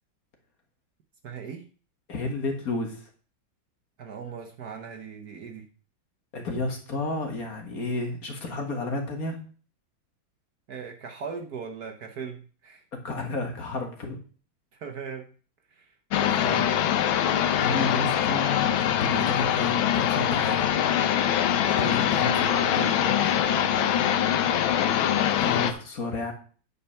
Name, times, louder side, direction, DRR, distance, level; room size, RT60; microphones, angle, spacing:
voice 1, 1.2-1.7 4.0-5.7 10.7-12.8 14.7-15.3 15.7-16.7 22.1-24.2, right 6 dB, 55° right, 4 dB, 1.4 m, -39 dB
voice 2, 2.1-3.1 6.3-9.4 12.9-14.2 16.4-16.6 17.5-20.7 21.7-23.0 25.2-26.3, left 3 dB, 45° left, 3 dB, 1.9 m, -31 dB
sound 1, 16.1-25.7, left 10 dB, 80° left, 1.6 m, -23 dB
9.2 x 5.6 x 5.7 m, 0.40 s
omnidirectional pair, 2.2 m